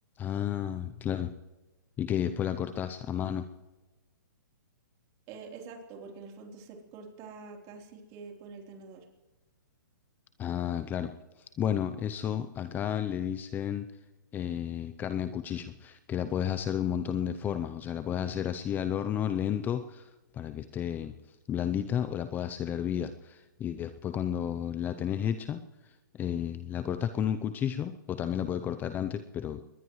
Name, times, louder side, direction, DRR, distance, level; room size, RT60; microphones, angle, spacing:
voice 1, 0.2-1.3 2.0-3.5 10.4-11.1 11.6-13.9 14.3-21.1 21.5-25.6 26.1-29.6, left 9 dB, 15° left, 10 dB, 0.6 m, -32 dB
voice 2, 5.3-9.1, right 4 dB, 30° right, 2 dB, 3.6 m, -46 dB
22.5 x 20.0 x 3.1 m, 1.1 s
hypercardioid pair, 140°, 11 cm